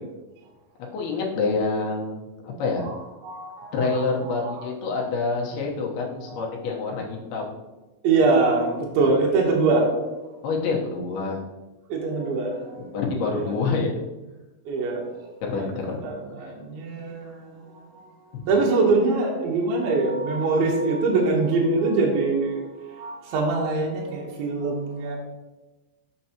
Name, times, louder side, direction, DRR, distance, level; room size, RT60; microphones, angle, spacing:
voice 1, 0.9-2.9 3.7-7.5 9.0-9.3 10.4-11.4 12.9-13.9 15.4-16.0, left 4 dB, 85° left, -1 dB, 3.0 m, -27 dB
voice 2, 3.2-4.5 6.3-6.5 8.0-9.9 11.9-12.8 13.3-13.6 14.7-15.0 15.5-15.8 16.0-17.8 18.5-25.2, right 3 dB, 75° right, -1 dB, 2.9 m, -24 dB
6.9 x 6.5 x 2.9 m, 1.1 s
omnidirectional pair, 4.4 m